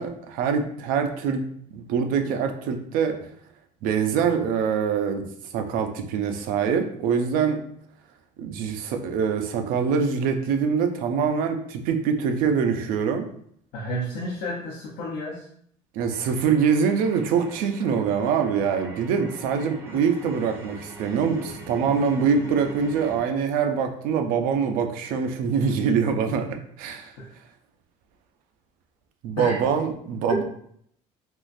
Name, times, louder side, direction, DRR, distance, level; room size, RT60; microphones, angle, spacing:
voice 1, 0.0-1.4 1.7-3.3 3.8-5.2 5.5-7.6 8.4-13.3 15.9-27.1 29.2-30.4, right 6 dB, 65° right, 5 dB, 0.5 m, -24 dB
voice 2, 13.7-15.5 27.2-27.3 29.4-29.6, equal, 75° left, -5 dB, 0.7 m, -31 dB
sound 1, 16.1-23.2, right 1 dB, 15° right, 0.6 m, -43 dB
3.6 x 2.4 x 2.6 m, 0.65 s
cardioid pair, 165°, 16 cm